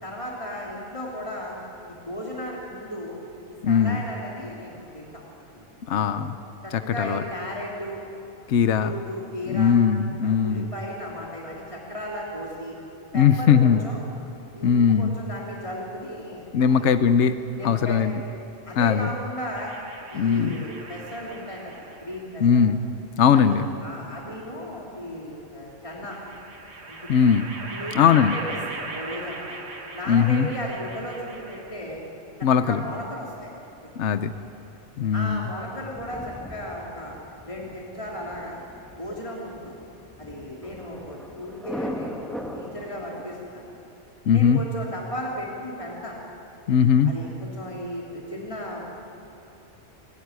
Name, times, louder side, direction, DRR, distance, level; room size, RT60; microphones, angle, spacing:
voice 1, 0.0-1.6 1.9-3.2 3.6-5.2 5.5-6.2 6.6-8.0 8.5-9.7 10.2-12.7 13.1-14.0 14.5-16.8 17.6-18.2 18.6-19.7 20.1-22.6 23.3-26.2 26.9-27.1 27.7-28.4 28.9-29.6 29.9-32.0 32.4-33.5 34.1-34.2 35.1-37.2 37.4-38.6 38.9-39.7 40.2-42.3 42.5-43.8 44.3-46.2 47.0-48.9, equal, 25° left, -3 dB, 3.3 m, -35 dB
voice 2, 3.6-4.0 5.9-6.4 7.0-7.2 8.5-8.9 9.5-10.7 13.1-13.8 14.6-15.1 16.5-17.4 17.6-18.1 18.8-19.1 20.1-20.6 22.4-22.8 23.2-23.7 27.1-27.5 27.9-28.3 30.1-30.5 32.4-32.8 34.0-34.3 35.0-35.4 44.3-44.6 46.7-47.1, left 7 dB, 75° left, 10 dB, 1.1 m, -19 dB
sound 1, 19.6-22.2 23.3-24.3 25.9-31.9, right 3 dB, 65° right, 2.1 m, -39 dB
Thunder, 34.3-43.3, equal, ahead, 1.8 m, -40 dB
27.5 x 17.5 x 9.6 m, 2.9 s
omnidirectional pair, 1.2 m